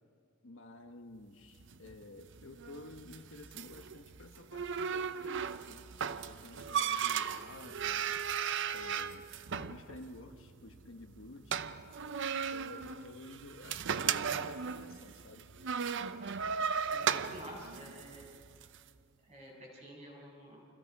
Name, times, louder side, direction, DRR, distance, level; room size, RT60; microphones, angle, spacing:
voice 1, 0.4-5.9 6.3-8.1 8.7-9.3 9.5-11.8 12.5-15.5, left 2 dB, 65° left, 5 dB, 1.4 m, -52 dB
sound 1, 1.5-18.8, right 7 dB, 60° right, 0.7 m, -37 dB
voice 2, 16.9-18.3 19.2-20.6, equal, 35° right, -2 dB, 7.5 m, -50 dB
29.0 x 26.0 x 4.8 m, 2.2 s
head